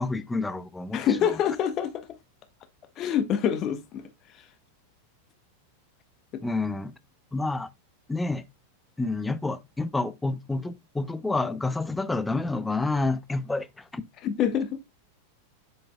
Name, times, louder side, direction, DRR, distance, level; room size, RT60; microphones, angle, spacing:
voice 1, 0.0-1.4 6.4-6.9 7.3-7.7 8.1-8.4 9.0-14.0, left 3 dB, 10° left, 0.6 m, -29 dB
voice 2, 0.9-2.0 3.0-4.0 14.2-14.8, left 9 dB, 35° left, 1.2 m, -26 dB
7.9 x 7.3 x 2.2 m
figure-of-eight pair, 90°, 0 cm